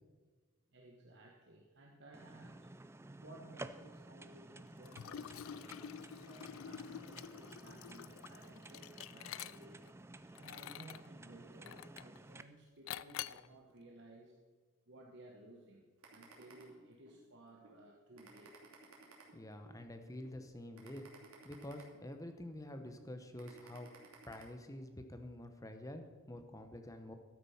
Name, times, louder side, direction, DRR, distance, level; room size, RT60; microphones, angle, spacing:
voice 1, 0.7-2.7 3.2-9.8 10.4-14.4 14.9-18.6, right 1 dB, 55° right, 0 dB, 1.2 m, -58 dB
sound 1, 2.1-12.4, right 2 dB, 10° right, 0.3 m, -53 dB
Liquid, 4.9-9.9 10.3-11.1 11.7-12.2 12.9-13.5, left 10 dB, 65° left, 0.3 m, -47 dB
sound 2, 16.0-17.2 17.6-17.8 18.2-19.8 20.2-20.4 20.7-22.4 22.8-23.0 23.4-24.4, right 4 dB, 85° right, 2.6 m, -58 dB
voice 2, 19.3-21.1 21.4-23.9 24.3-27.2, left 1 dB, 15° left, 6 dB, 0.9 m, -48 dB
12.0 x 8.8 x 5.8 m, 1.4 s
head